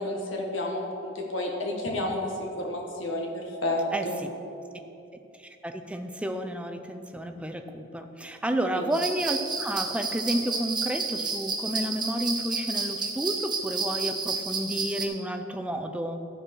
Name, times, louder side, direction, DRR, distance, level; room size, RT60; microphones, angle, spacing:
voice 1, 0.0-4.2 8.7-8.8, left 1 dB, 70° left, 0 dB, 1.6 m, -31 dB
voice 2, 3.9-4.3 5.4-16.2, right 1 dB, 5° right, 6 dB, 0.5 m, -31 dB
sound 1, 8.9-15.1, right 4 dB, 20° right, 1.0 m, -31 dB
13.5 x 4.7 x 6.2 m, 2.8 s
head